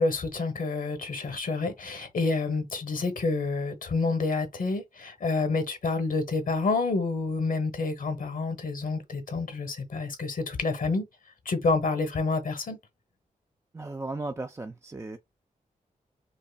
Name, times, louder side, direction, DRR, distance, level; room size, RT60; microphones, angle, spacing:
voice 1, 0.0-11.1 11.5-12.8, left 3 dB, 70° left, 1.0 m, -28 dB
voice 2, 13.7-15.2, right 2 dB, 20° right, 0.4 m, -36 dB
5.3 x 2.1 x 2.3 m
wide cardioid pair, 100°, 15 cm